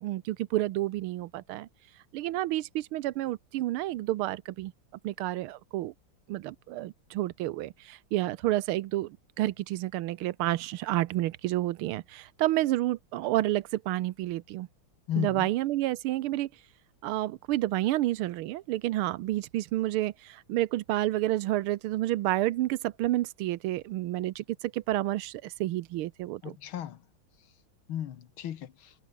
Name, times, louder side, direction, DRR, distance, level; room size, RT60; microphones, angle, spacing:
voice 1, 0.0-1.7 2.1-4.7 5.0-5.9 6.3-14.7 15.2-16.5 17.0-24.4 24.7-26.5, right 15 dB, 85° right, 1.6 m, -30 dB
voice 2, 15.1-15.5 26.4-27.0 27.9-29.0, left 10 dB, 75° left, 2.0 m, -34 dB
omnidirectional pair, 2.3 m